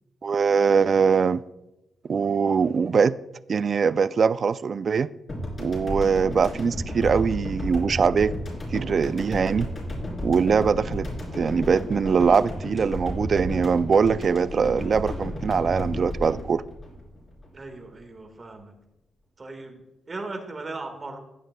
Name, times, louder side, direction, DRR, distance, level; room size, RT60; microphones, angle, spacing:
voice 1, 0.2-1.4 2.1-3.1 3.5-5.1 5.6-8.3 8.7-9.7 10.2-11.1 11.3-16.6, right 6 dB, 50° right, 0.3 m, -22 dB
sound 1, 5.3-17.8, left 1 dB, 45° left, 3.9 m, -33 dB
voice 2, 17.5-18.7 19.4-21.2, right 3 dB, 35° right, 1.6 m, -38 dB
15.0 x 8.5 x 2.2 m
cardioid pair, 90°, 0 cm